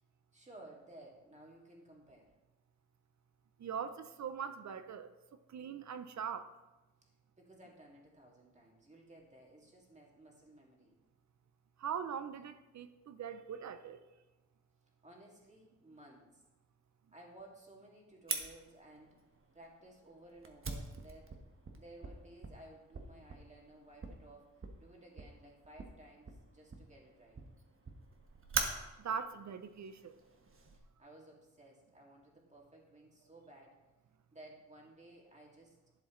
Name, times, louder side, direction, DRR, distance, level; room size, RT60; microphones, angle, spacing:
voice 1, 0.3-2.3 7.4-11.0 15.0-16.4 17.1-19.2 19.5-21.4 21.8-24.5 24.8-27.4 31.0-33.8 34.3-35.8, right 1 dB, 20° right, -2 dB, 2.3 m, -57 dB
voice 2, 3.6-5.1 5.5-6.5 11.8-14.0 29.0-30.1, right 7 dB, 60° right, 11 dB, 0.6 m, -41 dB
Fire, 18.3-30.8, right 4 dB, 40° right, 1.2 m, -44 dB
11.5 x 7.5 x 3.1 m, 1.1 s
cardioid pair, 85°, 32 cm